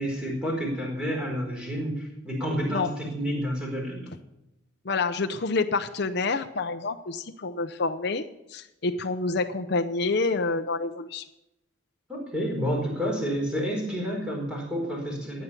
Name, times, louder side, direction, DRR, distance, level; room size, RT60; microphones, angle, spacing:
voice 1, 0.0-4.1 12.1-15.4, equal, 5° right, -2 dB, 4.7 m, -29 dB
voice 2, 4.8-11.2, left 3 dB, 55° left, 7 dB, 0.8 m, -28 dB
15.5 x 9.6 x 6.9 m, 0.91 s
head